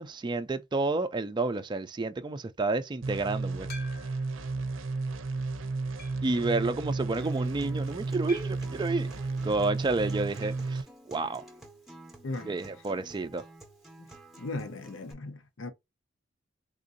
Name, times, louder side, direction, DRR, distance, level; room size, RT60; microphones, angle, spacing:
voice 1, 0.0-3.7 6.2-9.1 9.4-10.8 11.1-11.4 12.5-13.4, right 3 dB, 25° right, 0.3 m, -30 dB
sound 1, 3.0-10.8, right 3 dB, 80° right, 0.5 m, -33 dB
sound 2, 3.7-4.4 5.0-5.1 6.0-6.4 8.3-8.8 10.4-10.7 11.0-11.1 11.3-11.4 13.4-13.5, left 3 dB, 50° left, 0.8 m, -47 dB
Acoustic guitar, 7.1-15.1, right 1 dB, ahead, 0.7 m, -51 dB
voice 2, 14.4-15.7, left 2 dB, 80° left, 0.7 m, -37 dB
3.7 x 2.6 x 2.5 m
head